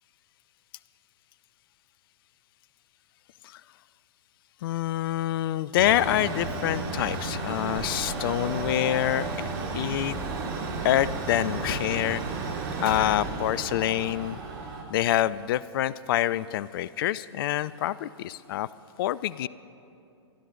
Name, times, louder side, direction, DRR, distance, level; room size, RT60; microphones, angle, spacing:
voice 1, 4.6-9.3 9.7-10.2 10.8-12.2 12.8-14.4 14.9-18.7 19.0-19.5, left 13 dB, 50° left, 19 dB, 0.4 m, -26 dB
Mechanical fan, 5.8-14.8, right 3 dB, 50° right, 2.4 m, -33 dB
27.5 x 10.5 x 3.8 m, 2.7 s
hypercardioid pair, 115°, 15 cm